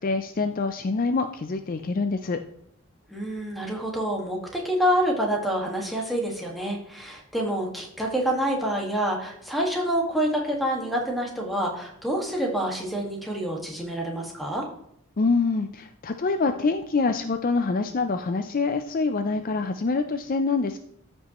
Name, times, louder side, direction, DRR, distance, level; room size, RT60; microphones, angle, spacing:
voice 1, 0.0-2.4 15.2-20.8, left 4 dB, 40° left, 8 dB, 0.4 m, -25 dB
voice 2, 3.1-14.7, equal, ahead, -3 dB, 1.6 m, -27 dB
14.0 x 5.4 x 3.0 m, 0.72 s
head